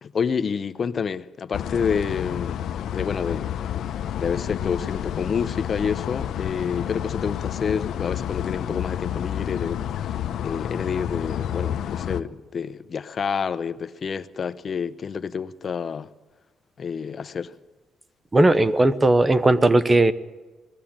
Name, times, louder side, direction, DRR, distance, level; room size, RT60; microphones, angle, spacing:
voice 1, 0.0-2.6 2.9-3.5 4.2-16.1 16.8-17.5, left 6 dB, 45° left, 0.9 m, -28 dB
sound 1, 1.5-12.2, left 10 dB, 70° left, 0.9 m, -29 dB
voice 2, 18.3-20.1, right 2 dB, 20° right, 0.9 m, -17 dB
20.0 x 14.5 x 8.8 m
cardioid pair, 90°, 0 cm